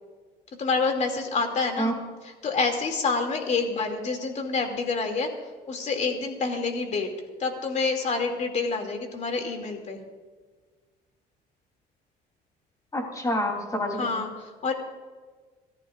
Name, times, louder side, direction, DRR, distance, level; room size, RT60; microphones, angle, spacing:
voice 1, 0.6-1.9 2.2-5.3 5.7-7.1 7.4-10.0 13.9-14.7, left 4 dB, 45° left, 4 dB, 2.7 m, -27 dB
voice 2, 12.9-14.1, equal, 20° left, 2 dB, 3.4 m, -27 dB
27.5 x 14.0 x 2.6 m, 1.4 s
cardioid pair, 110°, 17 cm